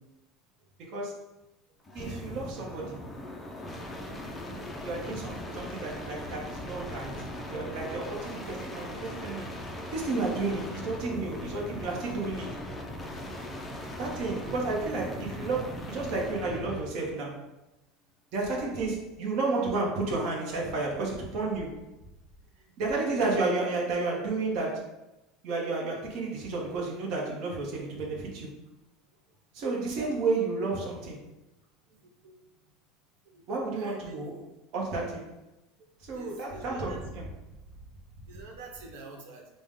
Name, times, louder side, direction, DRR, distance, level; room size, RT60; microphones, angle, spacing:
voice 1, 0.8-1.2 1.9-3.0 4.8-9.5 9.9-12.6 14.0-17.4 18.3-21.8 22.8-24.9 25.4-28.6 29.5-31.2 33.5-34.4 34.7-35.3 36.1-37.3, right 3 dB, 45° right, -2 dB, 0.8 m, -32 dB
sound 1, 1.8-16.9 18.7-19.1, left 1 dB, 10° left, 0.4 m, -39 dB
voice 2, 31.9-32.4 33.3-33.5 33.7-34.2 36.1-37.0 38.3-39.5, right 3 dB, 85° right, 0 dB, 0.9 m, -47 dB
5.1 x 2.1 x 3.6 m, 0.98 s
cardioid pair, 175°, 0 cm